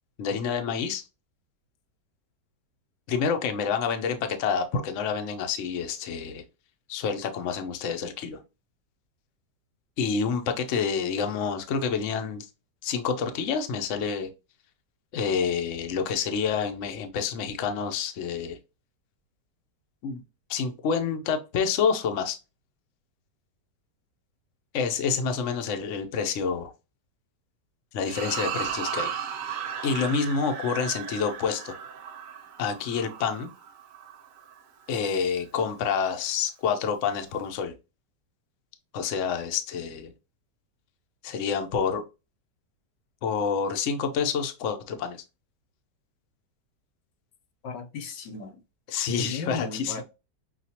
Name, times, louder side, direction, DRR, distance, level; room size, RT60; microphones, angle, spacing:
voice 1, 0.2-1.0 3.1-6.4 6.9-8.4 10.0-12.5 12.8-14.3 15.1-18.6 20.0-20.2 20.5-22.4 24.7-26.7 27.9-29.1 29.8-31.7 32.6-33.5 34.9-37.7 38.9-40.1 41.2-42.0 43.2-45.2 48.9-50.0, left 6 dB, 55° left, 1.0 m, -28 dB
sound 1, 28.0-34.6, right 8 dB, 60° right, 1.0 m, -35 dB
voice 2, 47.6-48.6 49.1-50.0, left 4 dB, 85° left, 1.5 m, -35 dB
6.2 x 2.5 x 2.8 m
omnidirectional pair, 1.8 m